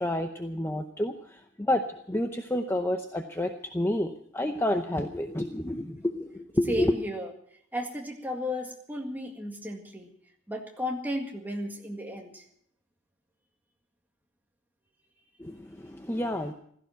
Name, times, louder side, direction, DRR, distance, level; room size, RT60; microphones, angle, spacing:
voice 1, 0.0-7.0 15.4-16.5, left 1 dB, 10° left, 6 dB, 0.7 m, -29 dB
voice 2, 6.7-7.3 7.7-10.1 10.5-12.4, left 1 dB, 10° right, 2 dB, 1.9 m, -34 dB
16.0 x 14.5 x 5.8 m, 0.65 s
head